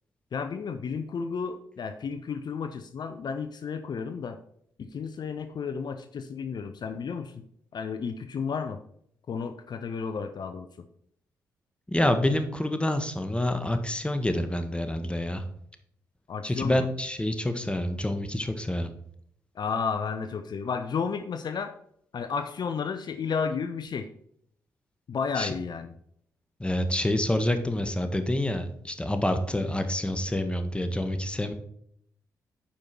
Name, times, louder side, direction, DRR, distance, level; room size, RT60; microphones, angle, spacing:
voice 1, 0.3-4.4 4.8-7.4 7.7-8.8 9.3-10.9 16.3-16.8 19.6-21.7 22.1-24.1 25.1-25.9, left 6 dB, 60° left, 9 dB, 0.8 m, -32 dB
voice 2, 11.9-15.4 16.4-18.9 25.3-25.5 26.6-31.5, left 1 dB, 15° left, 8 dB, 1.6 m, -27 dB
8.9 x 5.5 x 4.5 m, 0.68 s
hypercardioid pair, 45°, 8 cm